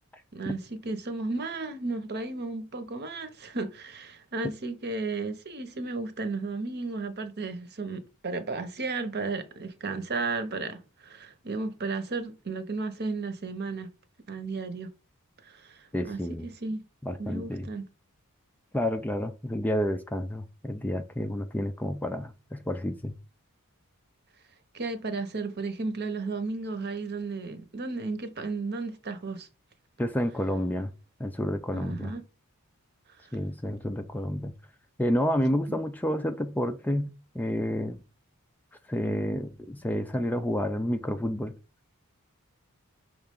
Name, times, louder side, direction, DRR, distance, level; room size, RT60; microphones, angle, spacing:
voice 1, 0.3-13.9 14.3-14.9 15.4-16.8 17.2-17.9 24.7-29.5 31.7-32.2 35.7-35.8, right 3 dB, 50° right, 0.9 m, -34 dB
voice 2, 15.9-16.5 17.0-17.7 18.7-23.2 30.0-30.9 31.2-32.1 33.3-34.5 35.0-38.0 38.9-41.6, left 1 dB, 10° left, 0.4 m, -30 dB
5.8 x 3.2 x 5.3 m
head